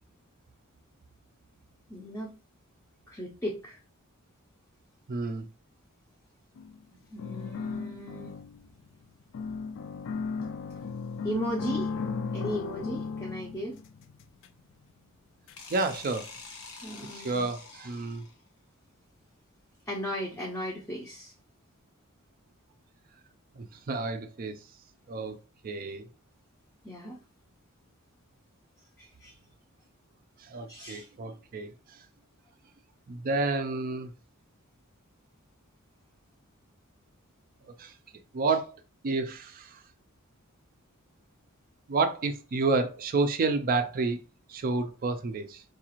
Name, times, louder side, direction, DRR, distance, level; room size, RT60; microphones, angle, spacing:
voice 1, 1.9-2.3 3.1-3.8 7.1-8.3 11.2-11.9 12.3-13.8 16.8-17.4 19.9-21.3 26.8-27.2 29.0-29.4 30.7-31.1, equal, 10° left, 0.5 m, -36 dB
voice 2, 5.1-5.5 15.7-16.3 17.1-18.2 23.6-24.5 25.1-25.4 25.6-26.1 30.4-32.0 33.1-34.1 37.8-37.9 38.3-38.8 39.0-39.8 41.9-44.2 44.5-45.6, right 3 dB, 40° right, 0.4 m, -30 dB
sound 1, 6.6-6.8 7.2-8.9 9.3-14.5 15.5-15.6 16.0-16.1, left 5 dB, 60° left, 0.3 m, -35 dB
sound 2, 15.6-18.5, left 4 dB, 75° left, 1.0 m, -46 dB
4.7 x 2.4 x 2.9 m
head